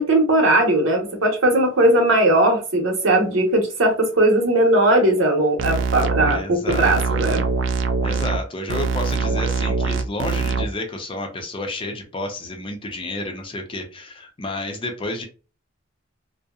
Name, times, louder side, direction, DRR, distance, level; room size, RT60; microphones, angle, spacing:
voice 1, 0.0-6.4 6.8-7.4, right 1 dB, 85° right, 3 dB, 0.8 m, -18 dB
sound 1, 5.6-6.3 6.7-8.4 8.7-10.7, right 5 dB, 65° right, 0.3 m, -23 dB
voice 2, 6.3-7.2 8.0-15.2, left 2 dB, 25° left, 4 dB, 0.5 m, -31 dB
2.6 x 2.0 x 2.3 m, 0.34 s
head